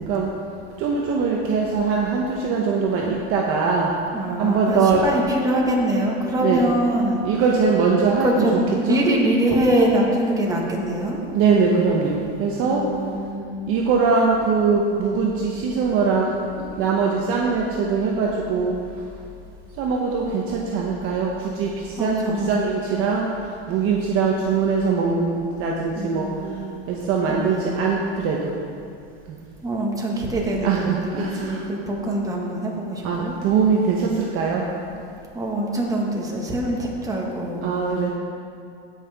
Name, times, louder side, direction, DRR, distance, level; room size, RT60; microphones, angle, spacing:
voice 1, 0.8-3.9 4.4-5.0 6.4-6.6 7.2-8.5 8.9-9.0 11.3-12.8 13.7-18.7 19.8-21.3 21.6-21.7 22.0-23.3 23.7-26.3 26.9-28.5 30.6-31.6 33.0-34.6 37.6-38.1, right 5 dB, 45° right, -2 dB, 1.0 m, -22 dB
voice 2, 4.1-7.2 8.2-11.2 12.6-13.7 22.0-22.6 25.9-26.9 27.3-27.9 29.6-33.3 35.3-37.6, right 1 dB, 10° right, -2 dB, 1.5 m, -24 dB
16.5 x 5.7 x 3.5 m, 2.4 s
supercardioid pair, 140°, 31 cm